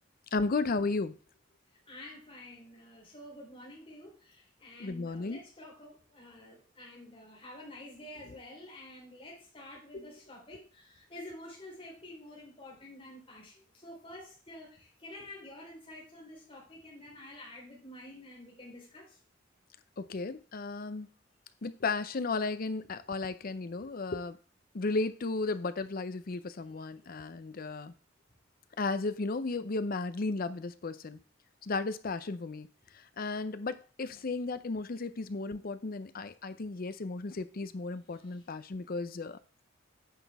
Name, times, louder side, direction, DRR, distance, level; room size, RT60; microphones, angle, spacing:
voice 1, 0.3-1.1 4.8-5.4 9.9-10.1 20.0-21.1 21.6-24.4 24.7-27.9 28.8-31.2 31.6-32.7 33.2-39.4, left 3 dB, 50° left, 0.6 m, -34 dB
voice 2, 1.9-19.2 38.1-38.4, left 1 dB, 30° left, 3.8 m, -49 dB
9.5 x 6.0 x 3.5 m
head